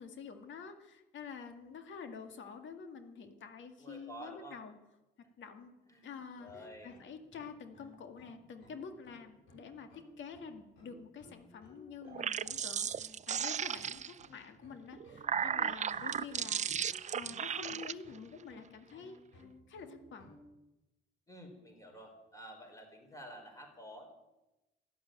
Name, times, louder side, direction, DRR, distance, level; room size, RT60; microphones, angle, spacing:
voice 1, 0.0-4.7 5.4-5.8 6.0-6.5 6.8-20.3, left 6 dB, 70° left, 7 dB, 2.0 m, -48 dB
voice 2, 3.8-4.6 5.9-6.1 6.4-7.0 21.3-24.1, right 1 dB, 15° left, 2 dB, 4.8 m, -50 dB
sound 1, 6.2-20.4, left 1 dB, 90° left, 5.4 m, -58 dB
sound 2, 12.0-14.3 14.9-17.9, right 8 dB, 35° right, 0.5 m, -35 dB
13.0 x 11.0 x 9.1 m, 0.99 s
cardioid pair, 90°, 20 cm